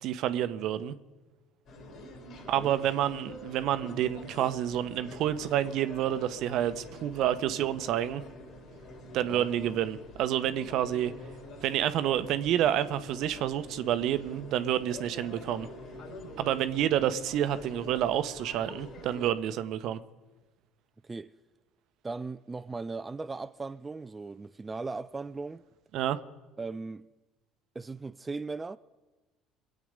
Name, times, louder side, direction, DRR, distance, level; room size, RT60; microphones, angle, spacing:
voice 1, 0.0-1.0 2.5-8.2 9.1-11.1 11.6-15.7 16.4-20.0 25.9-26.2, right 11 dB, 60° right, 0.8 m, -29 dB
sound 1, 1.7-19.3, left 1 dB, 60° left, 3.2 m, -46 dB
voice 2, 21.0-21.3 22.0-25.6 26.6-27.1 27.7-28.8, right 3 dB, 20° right, 0.4 m, -38 dB
23.5 x 8.5 x 5.2 m
hypercardioid pair, 70°, 0 cm